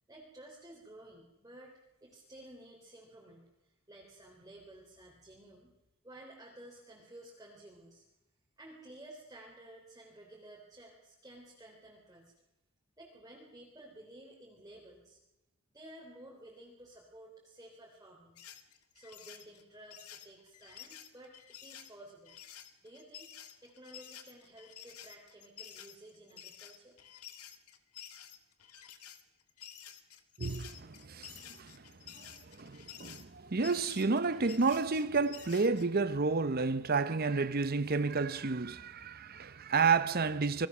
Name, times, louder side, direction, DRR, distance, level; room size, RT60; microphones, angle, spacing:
voice 1, 0.1-1.7 2.0-5.7 6.0-8.0 8.6-12.3 13.0-15.2 15.7-18.4 18.9-22.4 22.8-23.3 23.6-27.0, right 1 dB, 15° right, 3.4 m, -54 dB
sound 1, 18.4-35.9, left 10 dB, 90° left, 1.8 m, -51 dB
voice 2, 30.4-31.8 32.2-32.3 32.6-40.7, right 4 dB, 45° right, 0.8 m, -31 dB
27.0 x 19.5 x 6.1 m
head